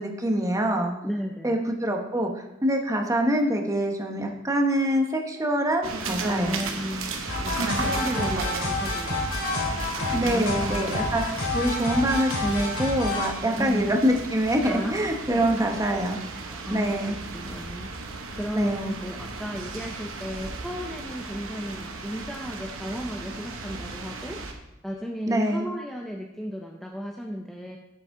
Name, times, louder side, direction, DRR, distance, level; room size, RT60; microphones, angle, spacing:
voice 1, 0.0-0.9 1.4-6.6 10.1-11.2 11.5-16.2 16.7-17.2 18.5-18.9 25.3-25.7, right 1 dB, 15° right, 2 dB, 0.9 m, -25 dB
voice 2, 1.0-1.6 6.3-9.3 10.0-11.1 13.6-14.0 14.6-15.0 15.3-15.8 16.6-17.9 18.4-24.4 24.8-27.8, equal, ahead, 0 dB, 0.5 m, -34 dB
sound 1, 5.8-24.5, right 3 dB, 80° right, 1.0 m, -35 dB
sound 2, 7.3-13.3, left 2 dB, 65° left, 3.4 m, -28 dB
8.2 x 7.7 x 3.7 m, 0.89 s
head